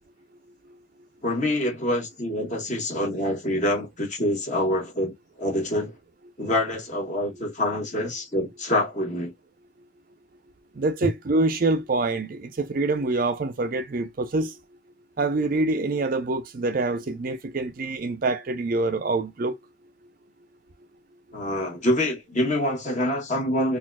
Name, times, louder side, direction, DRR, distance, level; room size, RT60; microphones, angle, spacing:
voice 1, 1.2-5.9 6.4-9.3 21.3-23.8, left 1 dB, 35° left, 1.4 m, -26 dB
voice 2, 10.8-14.5 15.2-19.6, right 2 dB, 45° right, 0.4 m, -25 dB
4.0 x 2.5 x 2.2 m
head